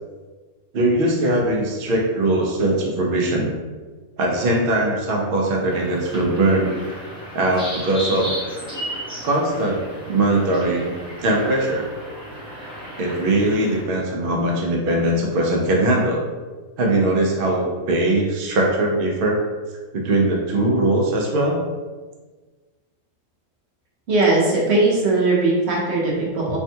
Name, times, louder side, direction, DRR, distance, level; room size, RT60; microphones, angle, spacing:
voice 1, 0.7-3.5 4.2-6.7 7.3-8.3 9.2-10.9 11.2-11.9 13.0-16.2 16.8-19.4 19.9-21.6, right 1 dB, 80° right, -1 dB, 0.5 m, -20 dB
sound 1, 5.7-13.8, equal, 5° right, 0.5 m, -34 dB
voice 2, 24.1-26.6, right 2 dB, 55° right, -4 dB, 0.9 m, -19 dB
3.4 x 2.2 x 2.7 m, 1.3 s
omnidirectional pair, 1.6 m